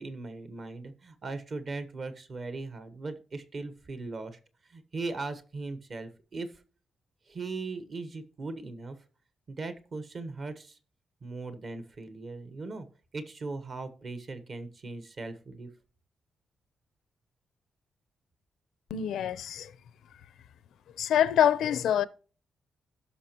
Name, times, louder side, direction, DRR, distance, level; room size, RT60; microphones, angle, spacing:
voice 1, 0.0-4.4 4.7-6.6 7.3-9.0 9.5-10.8 11.2-12.9 13.1-15.7, right 3 dB, 40° right, 1.2 m, -39 dB
voice 2, 18.9-19.7 21.0-22.1, left 9 dB, 90° left, 0.7 m, -25 dB
16.5 x 6.0 x 3.0 m
wide cardioid pair, 165°, 0 cm